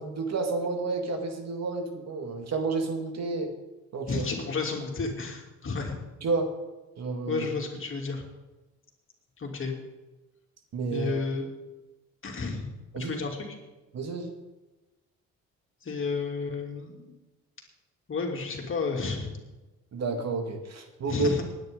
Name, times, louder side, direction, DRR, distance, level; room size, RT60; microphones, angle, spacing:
voice 1, 0.0-3.5 3.9-4.3 6.2-6.5 7.0-7.5 10.7-11.1 12.9-13.2 13.9-14.3 19.9-21.3, right 3 dB, 60° right, 5 dB, 2.0 m, -30 dB
voice 2, 4.1-6.0 7.3-8.2 9.4-9.7 10.9-11.5 12.2-12.7 12.9-13.5 15.8-17.0 18.1-19.3 21.1-21.4, left 4 dB, 45° left, 1 dB, 3.0 m, -31 dB
19.5 x 9.7 x 3.9 m, 1.1 s
cardioid pair, 90°, 30 cm